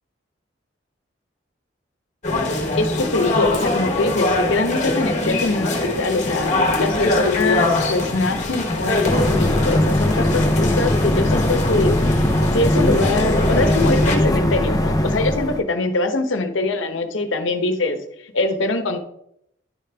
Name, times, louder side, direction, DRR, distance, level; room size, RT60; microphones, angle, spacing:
sound 1, 2.2-14.2, left 2 dB, 35° left, 1.2 m, -23 dB
voice 1, 2.8-6.5 6.8-12.0 12.5-18.0 18.3-19.0, left 2 dB, 75° left, 7 dB, 0.9 m, -23 dB
sound 2, 9.0-15.6, left 1 dB, 20° left, 0.6 m, -19 dB
10.5 x 5.1 x 3.4 m, 0.75 s
head